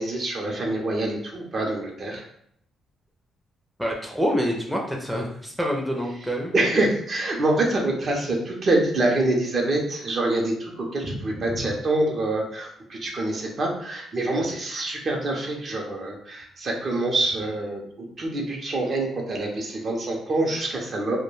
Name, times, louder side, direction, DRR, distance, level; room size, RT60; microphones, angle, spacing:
voice 1, 0.0-2.2 6.5-17.8 18.2-21.2, right 2 dB, 45° right, 0 dB, 0.6 m, -25 dB
voice 2, 3.8-6.5, equal, ahead, -1 dB, 0.5 m, -26 dB
2.2 x 2.2 x 3.1 m, 0.69 s
cardioid pair, 90°, 0 cm